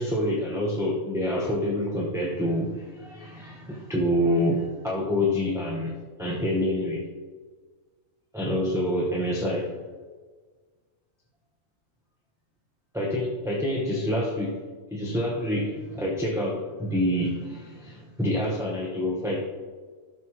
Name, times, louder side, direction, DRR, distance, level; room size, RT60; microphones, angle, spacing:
voice 1, 0.0-7.1 8.3-9.8 12.9-14.6 14.9-19.5, left 1 dB, 5° right, -4 dB, 0.8 m, -27 dB
13.0 x 6.4 x 3.0 m, 1.4 s
omnidirectional pair, 1.4 m